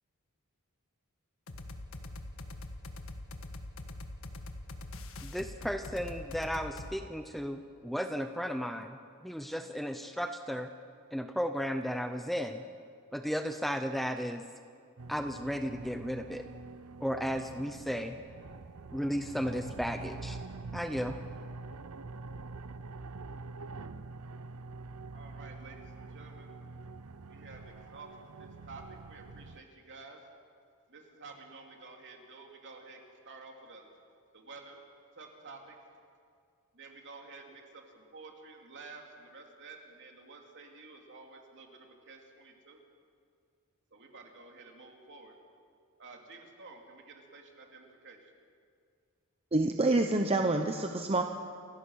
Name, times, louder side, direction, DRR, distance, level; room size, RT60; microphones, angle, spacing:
sound 1, 1.5-7.0, left 1 dB, 65° left, 1.6 m, -43 dB
voice 1, 5.2-9.0 9.2-10.7 11.1-12.6 13.1-14.4 15.1-16.4 17.0-18.1 18.9-20.4 20.7-21.2, equal, ahead, 7 dB, 0.6 m, -34 dB
sound 2, 15.0-29.6, right 3 dB, 80° right, 0.7 m, -45 dB
voice 2, 25.1-26.5 27.3-30.2 30.9-33.0 33.2-33.9 34.3-34.8 35.1-35.8 36.7-42.8 43.9-45.4 46.0-48.3, right 3 dB, 55° right, 1 dB, 2.9 m, -51 dB
voice 3, 49.5-51.2, right 2 dB, 25° right, 4 dB, 0.9 m, -27 dB
28.5 x 15.5 x 6.5 m, 2.3 s
head